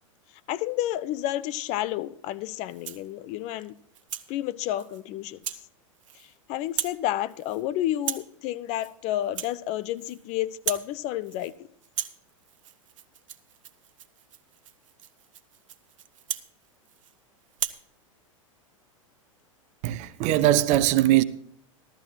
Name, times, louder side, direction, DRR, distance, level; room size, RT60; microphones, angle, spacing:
voice 1, 0.5-3.7 4.3-5.4 6.5-11.5, left 13 dB, 40° left, 0.6 m, -30 dB
Rattle (instrument), 2.6-3.1 3.6-4.3 4.8-5.0 5.4-5.6 5.9-6.4 6.6-7.0 7.3-7.6 8.0-8.3 8.7-8.9 9.2-10.2 10.5-10.9 11.2-11.6 11.8-17.1 17.5-17.8, right 10 dB, 70° right, 0.9 m, -37 dB
voice 2, 19.8-21.2, right 14 dB, 45° right, 0.8 m, -21 dB
15.5 x 13.0 x 2.9 m
hypercardioid pair, 100°, 17 cm